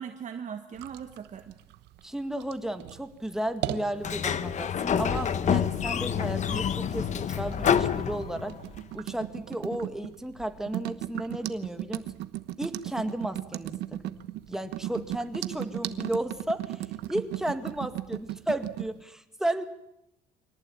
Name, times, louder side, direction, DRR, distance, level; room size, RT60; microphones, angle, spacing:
voice 1, 0.0-1.5, right 7 dB, 45° right, 6 dB, 1.6 m, -39 dB
sound 1, 0.8-18.9, right 14 dB, 85° right, 1.1 m, -37 dB
voice 2, 2.0-8.6 8.9-12.1 12.6-14.2 14.5-16.8 17.1-19.6, right 1 dB, 5° right, 7 dB, 2.0 m, -33 dB
Sliding door, 4.0-8.7, left 8 dB, 45° left, 1.2 m, -27 dB
25.0 x 18.5 x 8.9 m, 0.85 s
cardioid pair, 110°, 17 cm